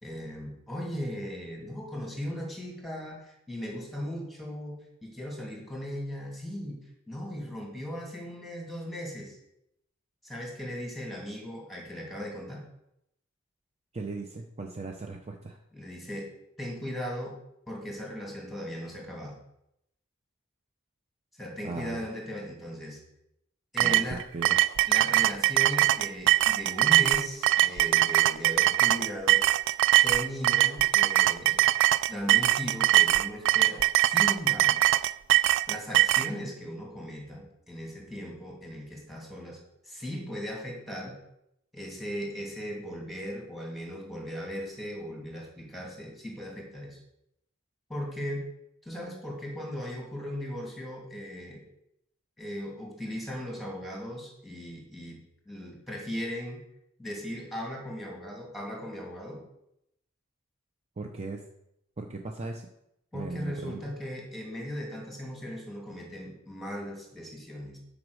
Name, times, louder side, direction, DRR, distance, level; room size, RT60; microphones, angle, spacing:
voice 1, 0.0-6.8 7.1-9.4 10.2-12.6 15.7-16.3 16.6-17.3 17.7-19.4 21.4-23.0 23.7-24.2 24.9-29.4 30.0-31.7 32.1-34.8 35.7-39.6 39.8-41.2 41.7-47.0 47.9-48.4 48.8-51.6 52.4-55.2 55.5-56.6 57.0-59.4 63.1-67.8, equal, ahead, -2 dB, 2.6 m, -38 dB
voice 2, 13.9-15.6 21.6-22.1 23.8-24.7 61.0-61.4 62.0-62.7 63.1-63.8, right 3 dB, 30° right, 3 dB, 0.7 m, -38 dB
sound 1, 23.8-36.3, right 15 dB, 60° right, 0.3 m, -22 dB
9.5 x 5.2 x 6.4 m, 0.80 s
head